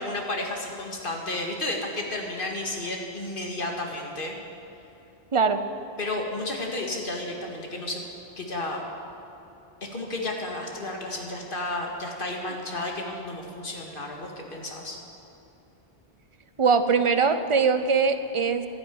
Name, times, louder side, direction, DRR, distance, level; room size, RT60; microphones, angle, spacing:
voice 1, 0.0-4.3 6.0-8.0 8.4-8.8 9.8-15.0, left 2 dB, 55° left, 1 dB, 2.0 m, -32 dB
voice 2, 5.3-5.6 16.6-18.7, right 5 dB, 35° right, 10 dB, 0.7 m, -22 dB
12.5 x 10.5 x 9.3 m, 2.8 s
omnidirectional pair, 1.1 m